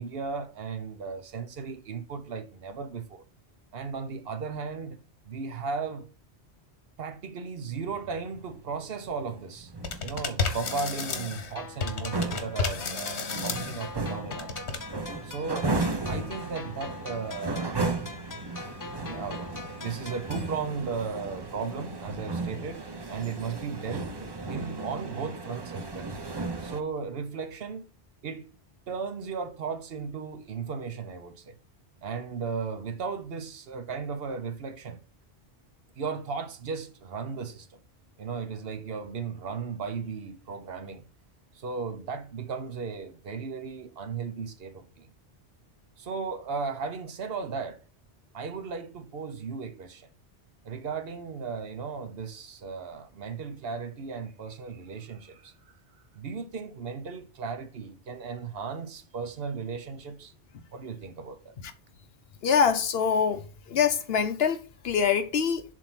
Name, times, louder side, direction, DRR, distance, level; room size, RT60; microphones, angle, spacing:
voice 1, 0.0-3.2 3.7-5.0 5.2-6.1 7.0-9.7 10.0-14.8 15.2-15.7 16.0-17.8 18.1-18.3 18.6-18.7 19.0-22.8 23.1-26.1 26.6-27.9 28.2-28.5 28.9-31.6 32.0-35.0 36.0-37.8 38.2-41.1 41.5-45.1 46.0-47.8 48.3-50.1 50.6-55.5 56.1-60.3 60.7-61.5, right 5 dB, 65° right, 1.0 m, -36 dB
sound 1, 7.7-26.8, right 3 dB, 25° right, 0.7 m, -35 dB
sound 2, 9.8-11.5 11.8-13.9 14.3-14.8, left 5 dB, 85° left, 1.4 m, -32 dB
sound 3, 11.6-20.6, left 4 dB, 35° left, 0.3 m, -43 dB
voice 2, 62.4-65.6, left 7 dB, 65° left, 1.0 m, -25 dB
7.2 x 2.8 x 5.7 m
omnidirectional pair, 1.1 m